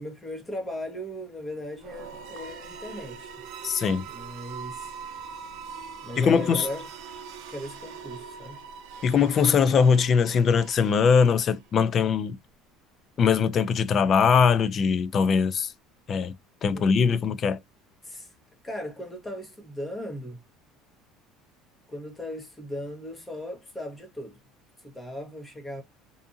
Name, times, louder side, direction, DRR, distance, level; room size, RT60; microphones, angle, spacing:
voice 1, 0.0-3.3 4.1-4.9 6.0-6.9 7.5-8.6 16.7-16.9 18.0-18.3 18.6-20.4 21.9-24.4 24.8-25.8, equal, 10° left, 0.9 m, -37 dB
sound 1, 1.7-11.7, right 6 dB, 65° right, 0.5 m, -42 dB
voice 2, 3.6-4.0 6.2-6.7 9.0-12.4 13.2-15.7 16.1-16.3 16.6-17.6, left 6 dB, 35° left, 0.3 m, -21 dB
2.6 x 2.5 x 2.4 m
cardioid pair, 145°, 0 cm